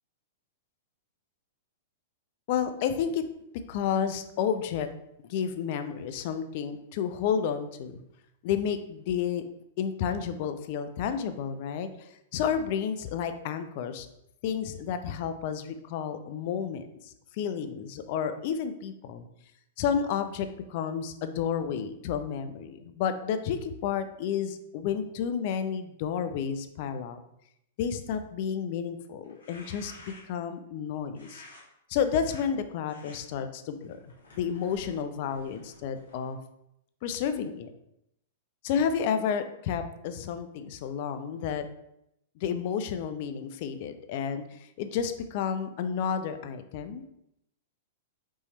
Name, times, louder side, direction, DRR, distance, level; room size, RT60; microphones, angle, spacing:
voice 1, 2.5-3.3 3.7-4.9 5.2-8.0 8.4-9.4 9.8-14.1 14.4-19.3 19.8-27.2 27.8-29.9 30.3-31.4 31.9-36.4 37.0-37.7 38.6-41.7 42.4-47.0, left 7 dB, 55° left, 9 dB, 0.5 m, -31 dB
sound 1, 29.2-30.5 31.2-31.6 32.1-32.4 32.9-33.2 33.8-36.4, left 2 dB, 85° left, 1.4 m, -52 dB
5.3 x 3.2 x 3.1 m, 0.80 s
hypercardioid pair, 110°, 0 cm